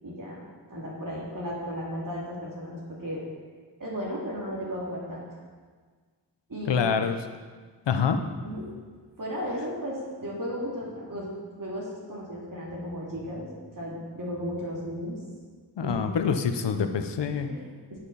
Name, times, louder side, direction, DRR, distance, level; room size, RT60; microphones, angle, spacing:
voice 1, 0.0-3.2 3.8-5.3 6.5-6.9 8.4-8.7 9.2-11.3 11.6-15.2 15.8-16.1 17.3-18.0, equal, 50° right, -5 dB, 2.9 m, -35 dB
voice 2, 6.7-7.2 7.9-8.2 15.8-17.5, left 6 dB, 75° left, 7 dB, 0.9 m, -26 dB
11.0 x 7.9 x 4.2 m, 1.6 s
cardioid pair, 50°, 43 cm